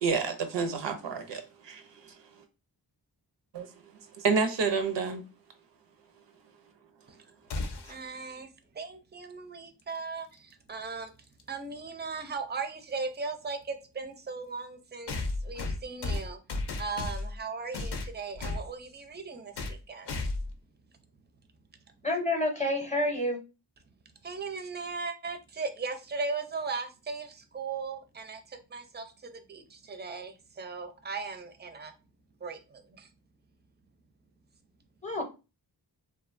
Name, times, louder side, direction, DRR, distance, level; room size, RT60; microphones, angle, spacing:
voice 1, 0.0-2.2 3.5-3.7 4.1-5.2, right 5 dB, 80° right, 0.6 m, -29 dB
sound 1, 7.5-8.1 10.2-10.3 11.4-11.5 15.1-17.4 17.7-18.7 19.6-19.8 20.1-20.6, left 2 dB, 65° left, 0.5 m, -34 dB
voice 2, 7.9-8.5 8.7-11.1 11.5-15.1 15.4-16.4 16.8-20.2 24.2-31.9 32.4-33.1, right 4 dB, 25° right, 0.4 m, -38 dB
voice 3, 22.0-23.4 35.0-35.2, left 1 dB, 15° left, 0.6 m, -28 dB
2.7 x 2.1 x 2.5 m
wide cardioid pair, 65°, 43 cm